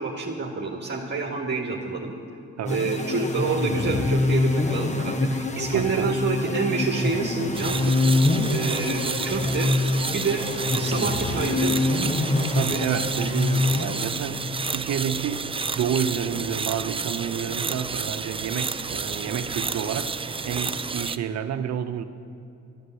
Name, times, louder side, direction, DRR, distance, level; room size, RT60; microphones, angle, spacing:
voice 1, 0.0-2.1 2.7-7.9 8.5-9.7 10.1-10.5 10.7-11.8, right 4 dB, 35° right, 0 dB, 1.8 m, -28 dB
sound 1, 2.7-14.4, left 2 dB, 25° left, 1.1 m, -25 dB
voice 2, 5.7-6.2 12.5-15.5 15.7-20.1 20.4-22.1, right 8 dB, 60° right, 8 dB, 1.0 m, -29 dB
sound 2, 7.5-21.2, right 4 dB, 20° right, 0.5 m, -31 dB
12.5 x 12.0 x 7.8 m, 2.6 s
cardioid pair, 90°, 30 cm